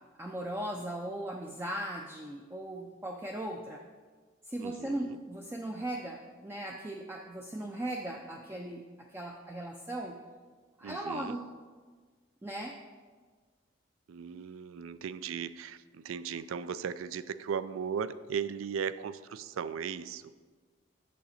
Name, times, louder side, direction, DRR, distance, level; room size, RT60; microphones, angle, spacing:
voice 1, 0.2-3.8 4.4-10.2 10.8-11.5 12.4-12.8, right 1 dB, 10° right, 1 dB, 0.4 m, -38 dB
voice 2, 4.6-5.2 10.8-11.4 14.1-20.2, right 7 dB, 90° right, 15 dB, 0.3 m, -37 dB
8.4 x 6.6 x 4.1 m, 1.5 s
head